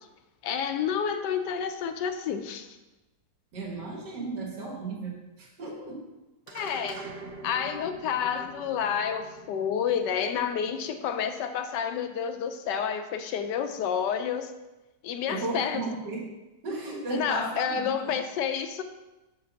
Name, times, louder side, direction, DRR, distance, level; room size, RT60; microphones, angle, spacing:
voice 1, 0.4-2.8 6.5-7.0 7.4-14.5 15.0-15.8 17.1-18.8, left 7 dB, 80° left, 8 dB, 1.3 m, -29 dB
voice 2, 3.5-6.1 15.3-16.3 16.6-18.2, right 3 dB, 80° right, -1 dB, 2.0 m, -35 dB
sound 1, 6.5-11.1, right 3 dB, 45° right, 0.8 m, -45 dB
7.6 x 3.9 x 5.8 m, 1.1 s
omnidirectional pair, 1.8 m